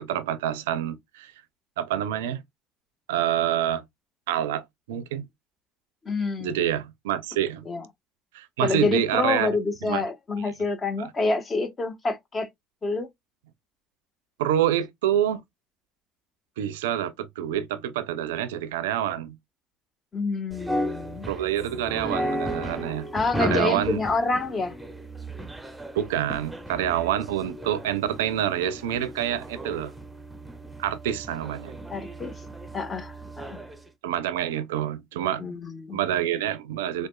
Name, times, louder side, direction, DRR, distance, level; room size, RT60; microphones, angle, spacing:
voice 1, 0.0-1.3 1.8-2.4 3.1-3.8 4.3-5.3 6.4-7.7 8.3-9.5 9.8-10.0 11.0-11.1 14.4-15.4 16.6-19.4 21.3-23.1 23.4-24.0 25.9-29.9 30.8-31.8 34.0-35.6 35.9-37.1, right 11 dB, 90° right, 0.5 m, -27 dB
voice 2, 6.0-6.6 7.7-7.8 8.6-12.5 12.8-13.1 20.1-21.3 23.1-24.7 31.9-32.4 32.7-33.6 35.4-36.0, left 3 dB, 30° left, 1.2 m, -27 dB
sound 1, 20.5-33.8, equal, 5° right, 0.8 m, -35 dB
4.8 x 2.3 x 2.3 m
supercardioid pair, 80°, 0 cm